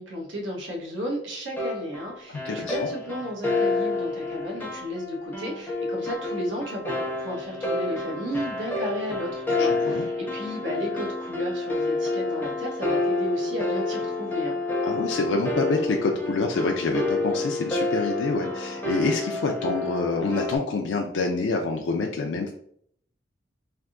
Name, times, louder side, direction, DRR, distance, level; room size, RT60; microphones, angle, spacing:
voice 1, 0.0-14.6, equal, 85° right, -1 dB, 1.0 m, -34 dB
sound 1, 1.6-20.6, left 2 dB, 10° left, 0.5 m, -29 dB
voice 2, 2.4-2.9 9.6-10.1 14.8-22.5, left 3 dB, 70° left, 2 dB, 0.4 m, -27 dB
3.3 x 2.6 x 2.5 m, 0.65 s
head